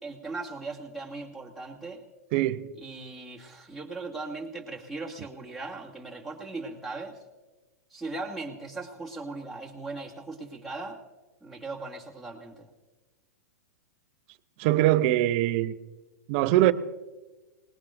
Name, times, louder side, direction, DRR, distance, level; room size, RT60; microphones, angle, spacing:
voice 1, 0.0-2.0 2.8-7.2 7.9-11.0 11.4-12.7, right 3 dB, ahead, 1 dB, 2.7 m, -38 dB
voice 2, 2.3-2.7 14.6-15.7 16.3-16.7, right 15 dB, 45° right, 14 dB, 0.8 m, -22 dB
27.0 x 20.0 x 2.6 m, 1.2 s
figure-of-eight pair, 105°, 8 cm